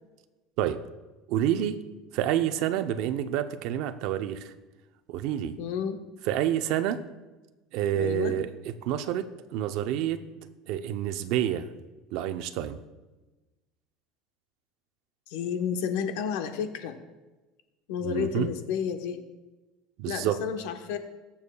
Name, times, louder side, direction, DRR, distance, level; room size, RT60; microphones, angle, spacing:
voice 1, 1.3-1.8 2.1-4.5 5.1-5.6 6.3-7.0 7.7-8.5 8.8-10.2 10.7-11.7 12.1-12.8 18.0-18.5 20.0-20.4, right 11 dB, 60° right, 10 dB, 0.6 m, -28 dB
voice 2, 5.6-6.0 7.9-8.3 15.3-16.9 17.9-19.2 20.1-21.0, left 7 dB, 75° left, 6 dB, 1.0 m, -31 dB
21.0 x 7.1 x 2.3 m, 1.2 s
cardioid pair, 160°, 0 cm